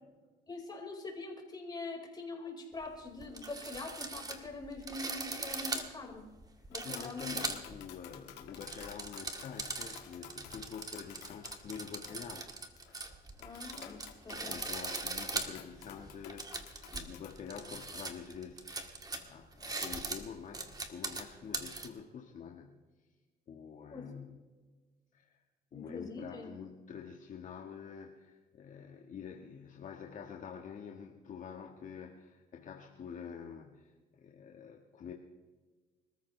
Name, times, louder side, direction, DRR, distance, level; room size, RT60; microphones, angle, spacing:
voice 1, 0.5-6.3 6.7-7.3 13.4-14.6 23.9-24.1 25.7-26.5, left 3 dB, 25° left, 0 dB, 4.9 m, -44 dB
sound 1, 2.8-2.9 3.2-7.8 8.4-21.9, right 3 dB, 20° right, 1.9 m, -40 dB
Tap, 6.7-18.0, left 10 dB, 85° left, 1.9 m, -54 dB
voice 2, 6.8-12.5 14.3-22.8 23.5-24.4 25.1-25.4 25.7-35.1, left 7 dB, 50° left, 1 dB, 1.6 m, -47 dB
26.5 x 14.0 x 3.3 m, 1.4 s
cardioid pair, 110°, 17 cm